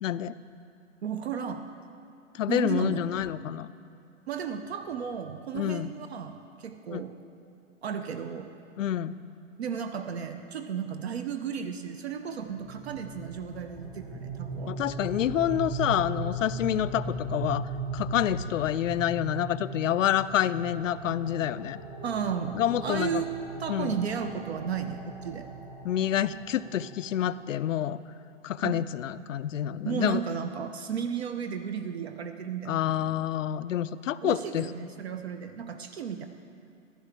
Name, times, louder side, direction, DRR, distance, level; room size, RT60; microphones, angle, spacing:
voice 1, 0.0-0.3 2.3-3.7 5.5-5.9 6.9-7.0 8.8-9.2 14.7-17.6 17.9-21.8 22.5-23.2 23.7-24.0 25.8-28.0 28.4-30.2 32.7-34.7, left 10 dB, 70° left, 15 dB, 0.5 m, -28 dB
voice 2, 1.0-1.7 2.5-3.0 4.3-7.1 7.8-8.5 9.6-14.8 22.0-23.3 23.6-25.5 28.6-28.8 29.8-33.1 34.2-36.3, right 7 dB, 55° right, 8 dB, 0.7 m, -34 dB
sound 1, 12.5-27.4, right 2 dB, 5° right, 0.9 m, -38 dB
14.5 x 11.5 x 3.4 m, 2.5 s
hypercardioid pair, 140°, 39 cm